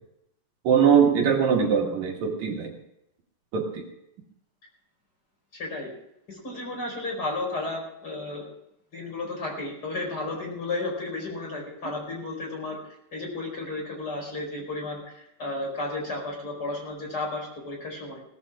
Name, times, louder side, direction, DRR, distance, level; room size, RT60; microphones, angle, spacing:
voice 1, 0.6-2.7 3.5-3.8, right 7 dB, 75° right, 1 dB, 3.3 m, -21 dB
voice 2, 5.5-5.9 6.3-8.5 8.9-12.8 13.1-18.2, left 2 dB, 35° left, 0 dB, 5.3 m, -33 dB
22.0 x 17.0 x 2.4 m, 0.82 s
omnidirectional pair, 3.3 m